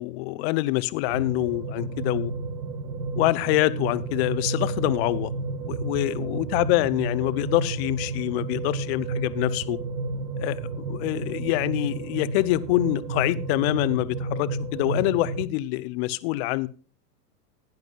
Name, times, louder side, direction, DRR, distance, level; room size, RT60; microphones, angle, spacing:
voice 1, 0.0-2.3 3.1-5.3 5.6-9.8 10.4-16.7, left 17 dB, 40° left, 16 dB, 0.9 m, -25 dB
sound 1, 1.1-15.5, right 3 dB, 75° right, 1.2 m, -31 dB
16.5 x 10.5 x 2.5 m, 0.38 s
hypercardioid pair, 105°, 49 cm